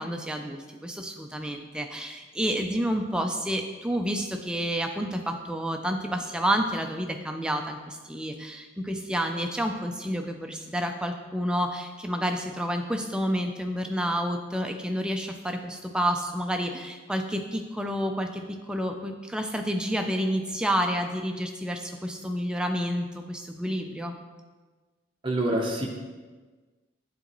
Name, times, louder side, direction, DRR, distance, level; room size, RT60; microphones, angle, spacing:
voice 1, 0.0-24.1, equal, 5° right, 4 dB, 0.3 m, -29 dB
voice 2, 25.2-25.9, right 1 dB, 25° right, -1 dB, 0.7 m, -26 dB
8.3 x 3.8 x 3.0 m, 1.3 s
head